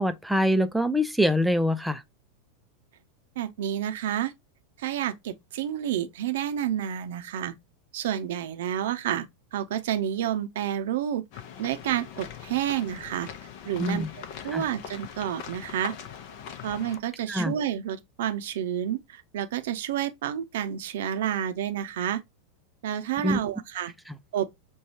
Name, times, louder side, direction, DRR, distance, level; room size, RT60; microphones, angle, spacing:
voice 1, 0.0-2.0 13.8-14.1 14.5-14.6 17.3-17.5 23.2-23.4 24.1-24.2, equal, ahead, 0.5 m, -24 dB
voice 2, 3.4-4.3 4.8-7.5 7.9-9.3 9.5-11.2 11.6-13.3 13.7-14.1 14.4-15.9 16.6-22.2 22.8-23.9 24.3-24.5, right 10 dB, 60° right, 0.6 m, -29 dB
sound 1, 11.3-17.0, left 8 dB, 50° left, 0.7 m, -41 dB
6.3 x 2.3 x 2.7 m
figure-of-eight pair, 90°, 0 cm